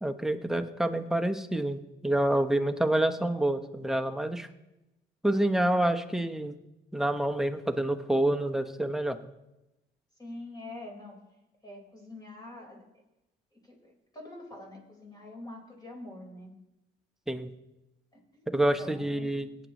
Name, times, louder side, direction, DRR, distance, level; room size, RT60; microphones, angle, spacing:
voice 1, 0.0-4.5 5.2-6.6 6.9-9.2 17.3-17.5 18.5-19.5, right 1 dB, ahead, 5 dB, 0.9 m, -27 dB
voice 2, 10.2-11.2 11.6-12.8 13.5-16.5 18.1-19.3, left 1 dB, 20° left, -1 dB, 4.3 m, -45 dB
18.0 x 9.4 x 3.0 m, 0.95 s
cardioid pair, 90°, 20 cm